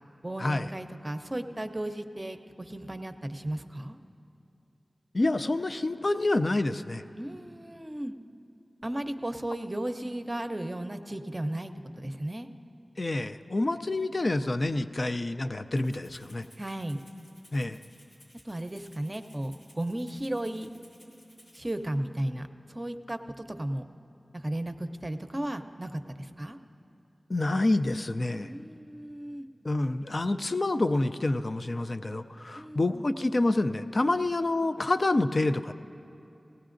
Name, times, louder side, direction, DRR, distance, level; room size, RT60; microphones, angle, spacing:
voice 1, 0.2-4.0 7.2-8.1 8.8-12.5 16.6-17.0 18.5-20.7 21.5-23.8 24.3-26.6 28.5-29.5 32.6-33.1 34.1-34.2, right 1 dB, 30° right, 7 dB, 0.6 m, -35 dB
voice 2, 5.1-7.0 13.0-16.5 17.5-17.8 27.3-28.5 29.6-35.7, left 2 dB, 50° left, 10 dB, 0.4 m, -27 dB
Rattle (instrument), 15.8-21.8, left 1 dB, 85° left, 3.5 m, -58 dB
18.5 x 16.5 x 2.6 m, 2.8 s
wide cardioid pair, 45°, 0 cm